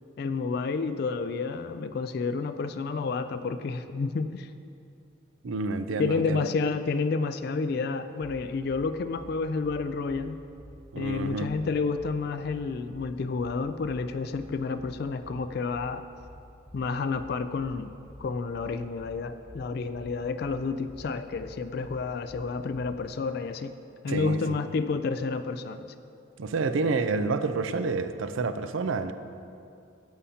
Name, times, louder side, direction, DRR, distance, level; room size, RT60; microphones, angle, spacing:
voice 1, 0.2-4.5 6.0-10.4 11.0-16.0 16.7-23.7 24.0-25.8, left 4 dB, 50° left, 10 dB, 0.3 m, -30 dB
voice 2, 5.4-6.4 10.9-11.5 24.1-24.4 26.4-29.1, right 3 dB, 75° right, 10 dB, 0.5 m, -28 dB
sound 1, 8.2-23.0, equal, 10° left, 0.7 m, -48 dB
14.5 x 8.4 x 2.8 m, 2.5 s
head